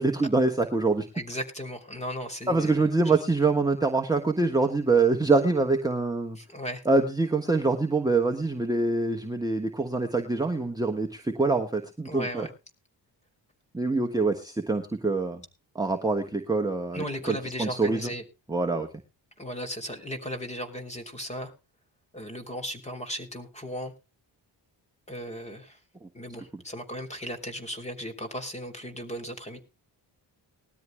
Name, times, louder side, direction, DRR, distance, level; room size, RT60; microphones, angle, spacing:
voice 1, 0.0-1.0 2.5-6.4 6.8-12.5 13.7-15.4 15.7-18.1 18.5-18.9, right 3 dB, 10° right, 2 dB, 1.3 m, -25 dB
voice 2, 1.1-3.2 6.4-6.8 12.0-12.5 16.9-18.2 19.4-21.5 22.1-23.9 25.1-25.8 26.1-29.6, equal, 15° left, 5 dB, 3.1 m, -36 dB
20.0 x 13.0 x 2.2 m, 0.29 s
wide cardioid pair, 130°, 44 cm